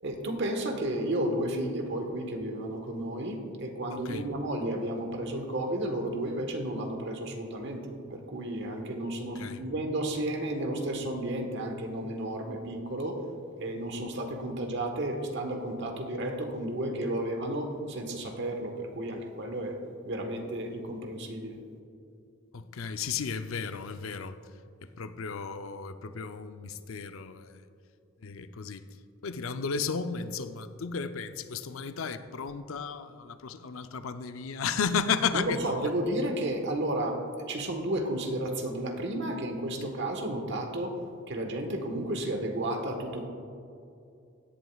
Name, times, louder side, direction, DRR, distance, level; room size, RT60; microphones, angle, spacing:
voice 1, 0.0-13.2 13.6-19.8 20.0-21.6 35.3-37.2 37.5-41.0 41.3-43.3, right 1 dB, 60° right, 4 dB, 1.3 m, -32 dB
voice 2, 3.9-4.2 9.4-9.6 22.5-24.4 24.8-27.6 28.2-28.8 29.2-35.9, left 5 dB, 85° left, 10 dB, 0.5 m, -34 dB
16.5 x 11.0 x 2.3 m, 2.6 s
head